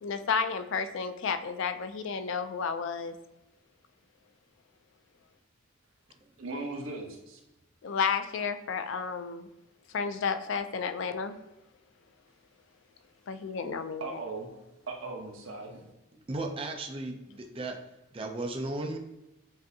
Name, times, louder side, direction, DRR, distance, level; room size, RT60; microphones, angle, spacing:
voice 1, 0.0-3.1 7.8-9.5 9.9-11.4 13.3-14.2, left 6 dB, 60° left, 9 dB, 0.3 m, -32 dB
voice 2, 6.4-7.4 14.0-14.5 14.9-15.9, right 3 dB, 70° right, 1 dB, 0.9 m, -38 dB
voice 3, 16.3-17.8 18.1-19.0, right 2 dB, 25° right, 3 dB, 0.4 m, -35 dB
7.5 x 2.6 x 2.7 m, 0.94 s
head